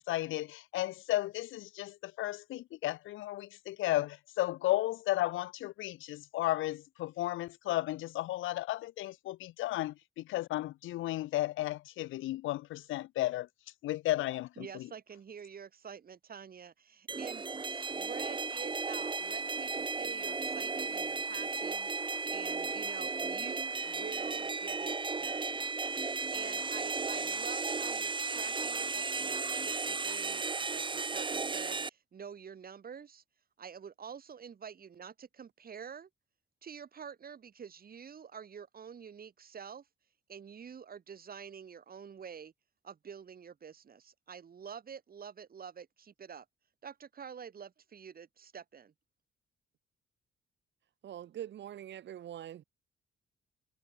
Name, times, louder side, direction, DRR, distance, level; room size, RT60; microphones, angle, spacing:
voice 1, 0.0-13.5 13.8-14.9, left 16 dB, 80° left, 0.7 m, -34 dB
voice 2, 14.6-25.9 26.3-33.2 33.6-36.1 36.6-39.9 40.3-42.5 42.8-46.5 46.8-48.9, right 7 dB, 50° right, 5.6 m, -48 dB
sound 1, 17.1-31.9, right 4 dB, 25° right, 1.2 m, -35 dB
voice 3, 51.0-52.6, right 11 dB, 65° right, 1.3 m, -43 dB
cardioid pair, 90°, 20 cm